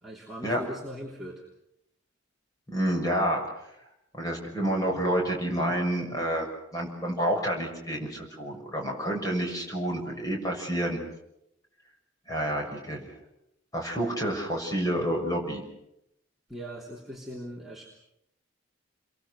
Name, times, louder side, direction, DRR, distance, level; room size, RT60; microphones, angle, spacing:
voice 1, 0.0-1.4 16.5-17.9, equal, ahead, -5 dB, 3.3 m, -40 dB
voice 2, 2.7-3.4 4.1-6.5 6.7-11.0 12.3-13.1 13.7-15.6, right 1 dB, 15° left, 0 dB, 6.7 m, -29 dB
29.5 x 23.0 x 6.5 m, 0.80 s
head